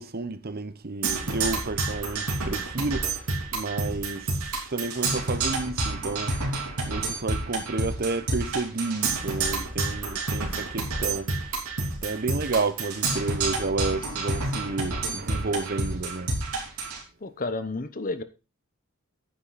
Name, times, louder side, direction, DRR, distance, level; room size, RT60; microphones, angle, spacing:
voice 1, 0.0-6.4 6.8-11.3 12.0-16.3, right 3 dB, 45° right, 0.8 m, -31 dB
Percussion, 1.0-17.0, right 3 dB, 80° right, 3.3 m, -29 dB
voice 2, 17.2-18.2, left 2 dB, 40° left, 0.8 m, -31 dB
9.6 x 8.9 x 4.1 m
head